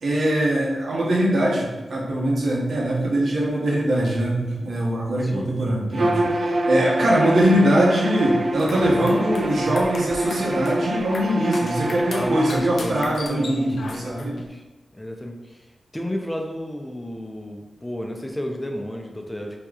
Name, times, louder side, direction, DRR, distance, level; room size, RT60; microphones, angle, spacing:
voice 1, 0.0-14.3, right 1 dB, 85° right, -5 dB, 0.9 m, -22 dB
Bowed string instrument, 5.9-12.7, right 1 dB, 65° right, 0.3 m, -26 dB
sound 1, 8.5-14.5, left 3 dB, 75° left, 0.3 m, -39 dB
voice 2, 12.2-14.6 14.9-15.7 15.9-19.6, left 1 dB, 15° left, 2 dB, 0.5 m, -32 dB
3.5 x 2.9 x 2.3 m, 1.1 s
wide cardioid pair, 75°, 0 cm